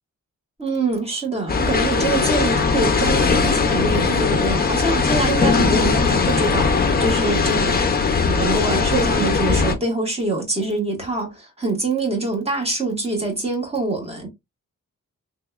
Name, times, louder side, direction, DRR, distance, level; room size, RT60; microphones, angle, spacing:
voice 1, 0.6-7.8 8.2-14.3, right 2 dB, 20° right, 1.5 m, -24 dB
sound 1, 1.5-9.7, left 4 dB, 30° left, 0.5 m, -19 dB
3.5 x 2.9 x 2.3 m
wide cardioid pair, 155°, 30 cm